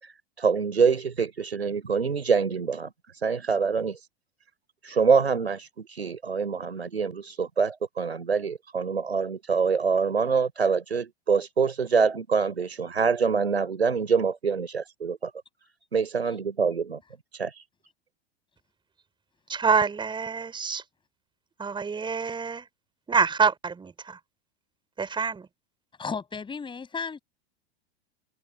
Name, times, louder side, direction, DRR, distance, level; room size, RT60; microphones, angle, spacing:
voice 1, 0.0-2.9 3.2-4.0 4.8-15.3 15.9-17.0 17.3-17.6, right 5 dB, 75° right, 4.4 m, -25 dB
voice 2, 19.5-20.8 21.6-22.7 23.1-24.2 25.0-25.5, right 5 dB, 15° right, 5.0 m, -26 dB
voice 3, 26.0-27.2, left 5 dB, 15° left, 6.0 m, -34 dB
open air
figure-of-eight pair, 90°, 32 cm